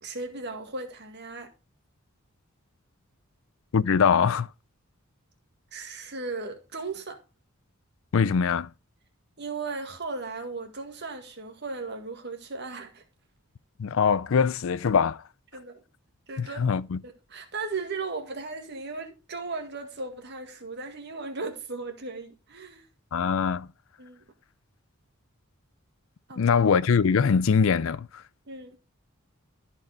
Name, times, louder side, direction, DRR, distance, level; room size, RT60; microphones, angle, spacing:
voice 1, 0.0-1.5 5.7-7.2 9.4-13.0 15.5-15.8 16.3-16.7 17.0-22.9 24.0-24.2 26.3-26.4 28.5-28.8, right 3 dB, 50° right, 1.8 m, -36 dB
voice 2, 3.7-4.5 8.1-8.7 13.8-15.2 16.4-17.0 23.1-23.7 26.4-28.2, left 6 dB, 65° left, 0.4 m, -23 dB
13.5 x 4.6 x 3.9 m
head